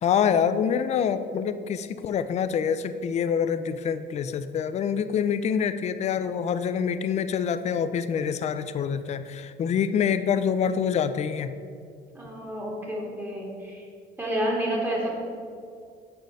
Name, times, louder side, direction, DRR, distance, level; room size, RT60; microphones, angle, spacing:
voice 1, 0.0-11.5, left 7 dB, 40° left, 12 dB, 0.4 m, -26 dB
voice 2, 12.1-13.8 14.2-15.1, right 1 dB, 10° right, -3 dB, 2.3 m, -29 dB
8.1 x 4.3 x 6.5 m, 2.3 s
cardioid pair, 110°, 17 cm